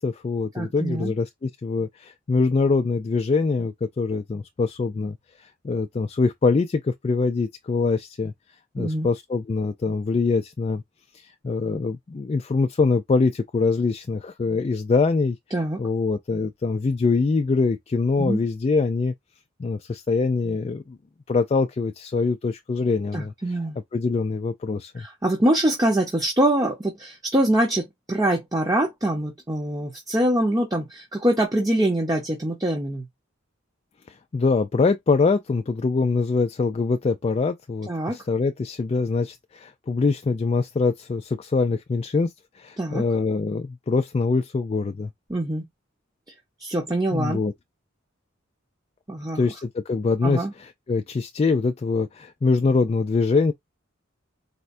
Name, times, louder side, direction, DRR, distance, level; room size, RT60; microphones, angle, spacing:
voice 1, 0.0-8.3 8.7-10.8 11.1-15.4 15.8-19.1 19.6-21.0 21.3-23.3 23.9-25.1 34.1-45.1 47.1-47.5 49.3-53.5, left 4 dB, 30° left, 0.3 m, -24 dB
voice 2, 0.5-1.1 8.8-9.1 15.5-15.8 18.2-18.4 23.1-23.8 25.0-33.0 37.9-38.2 42.8-43.0 45.3-45.6 46.6-47.4 49.1-49.4 50.2-50.5, right 1 dB, 20° right, 0.8 m, -24 dB
4.2 x 2.2 x 2.5 m
head